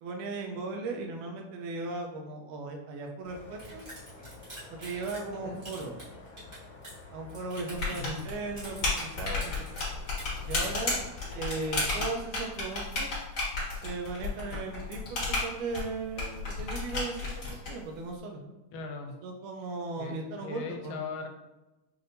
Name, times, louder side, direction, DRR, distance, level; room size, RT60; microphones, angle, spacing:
voice 1, 0.0-3.9 4.7-5.9 7.1-9.8 10.5-11.0 11.3-13.1 13.8-17.3 17.7-18.4 19.2-21.0, right 3 dB, 80° right, 3 dB, 2.1 m, -37 dB
sound 1, 3.2-12.0, left 2 dB, 60° left, 1.9 m, -49 dB
sound 2, 3.6-5.3 5.6-7.0 7.3-8.2 8.6-9.1 9.4-10.8, right 1 dB, 65° right, 0.5 m, -46 dB
sound 3, 7.7-17.7, left 3 dB, 40° left, 1.5 m, -33 dB
voice 2, 7.9-8.3 18.7-19.2 20.0-21.3, left 4 dB, 80° left, 4 dB, 2.1 m, -39 dB
6.0 x 2.6 x 2.6 m, 1.0 s
omnidirectional pair, 3.8 m